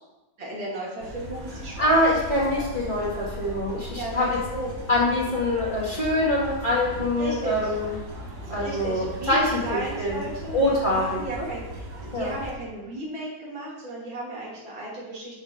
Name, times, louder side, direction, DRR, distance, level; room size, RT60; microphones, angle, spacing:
voice 1, 0.4-2.0 3.9-4.7 7.2-7.7 8.5-15.4, right 1 dB, 80° right, -6 dB, 3.4 m, -35 dB
sound 1, 1.0-12.5, equal, 65° right, 2.0 m, -38 dB
voice 2, 1.8-4.3 4.9-7.9 8.5-10.1 10.5-11.5 12.1-12.3, left 1 dB, 25° left, -7 dB, 2.4 m, -24 dB
7.2 x 7.1 x 5.0 m, 1.1 s
omnidirectional pair, 2.1 m